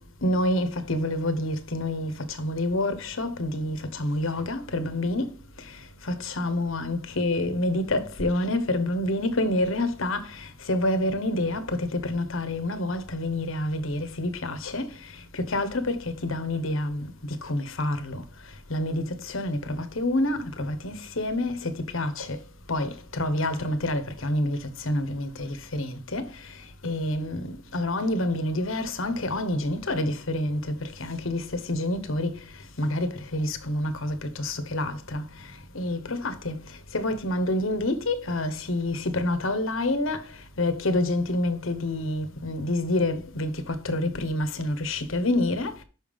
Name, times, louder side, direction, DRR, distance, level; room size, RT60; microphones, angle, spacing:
voice 1, 0.2-2.1 2.4-5.3 6.2-10.2 10.7-11.6 11.9-14.8 15.5-17.0 17.5-18.2 18.7-19.0 19.3-21.6 21.9-22.3 22.7-22.9 23.2-24.6 24.9-26.2 26.8-27.4 27.7-30.6 31.0-31.4 31.7-32.3 32.8-35.2 35.7-36.5 36.9-40.2 40.6-43.5 43.8-45.7, left 1 dB, 75° left, 1.1 m, -27 dB
6.1 x 5.3 x 5.3 m
head